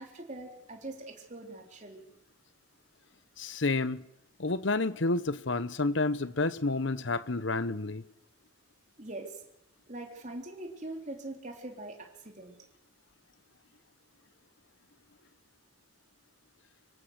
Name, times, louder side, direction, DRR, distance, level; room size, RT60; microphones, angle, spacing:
voice 1, 0.0-2.1 9.0-9.4 9.9-12.6, right 2 dB, 35° right, 3.6 m, -42 dB
voice 2, 3.4-4.0 4.4-8.0, left 3 dB, 65° left, 1.0 m, -30 dB
25.5 x 18.5 x 8.1 m
head